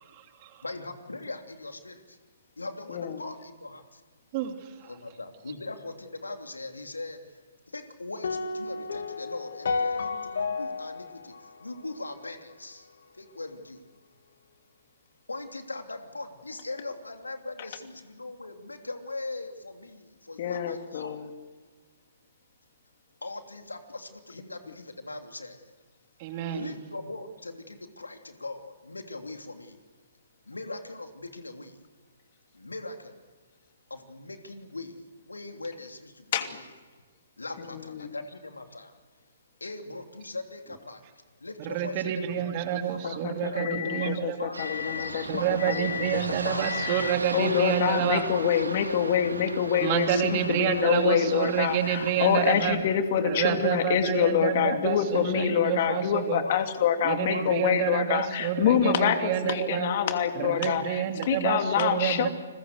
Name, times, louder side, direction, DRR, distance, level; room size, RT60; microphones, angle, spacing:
voice 1, 0.1-0.6 4.3-4.9 26.2-26.7 41.6-44.5 45.3-48.2 49.8-52.8 53.2-56.4 57.0-59.9 60.3-62.3, right 10 dB, 35° right, 6 dB, 2.9 m, -28 dB
voice 2, 0.6-2.2 2.6-4.0 4.8-7.4 7.7-12.9 13.1-13.8 15.3-21.1 23.2-25.7 26.5-29.8 30.4-31.8 32.5-33.2 33.9-36.6 37.4-38.9 39.6-41.0 41.4-42.5 42.7-44.9 45.4-47.5 47.9-48.4 48.7-49.6 50.1-51.2 51.8-52.5 53.3-53.9 54.2-54.4 54.9-55.5 55.9-56.6 57.1-57.7 58.9-59.2 60.2-60.4 60.6-60.7 61.4-61.7, left 2 dB, 85° left, 6 dB, 3.0 m, -40 dB
sound 1, 8.2-12.5, left 4 dB, 65° left, 2.3 m, -32 dB
voice 3, 20.4-21.3 36.3-36.5 37.7-38.1 43.0-45.2 45.6-46.2 46.4-62.3, left 8 dB, 45° left, 7 dB, 2.9 m, -26 dB
sound 2, 44.5-52.7, right 3 dB, 80° right, 2.7 m, -37 dB
29.5 x 21.5 x 8.0 m, 1.4 s
figure-of-eight pair, 130°, 0 cm